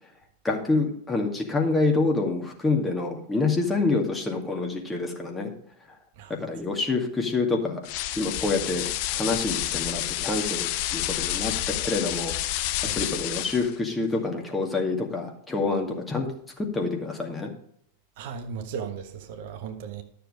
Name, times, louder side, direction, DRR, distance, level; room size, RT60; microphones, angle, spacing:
voice 1, 0.4-5.5 6.4-7.8 8.2-8.8 9.1-12.3 13.0-16.3 16.6-17.5, left 3 dB, 10° left, 2.2 m, -27 dB
sound 1, 7.9-13.8, left 14 dB, 45° left, 0.7 m, -29 dB
voice 2, 18.2-20.0, right 6 dB, 50° right, 1.3 m, -36 dB
12.5 x 6.9 x 5.0 m
figure-of-eight pair, 90°, 0 cm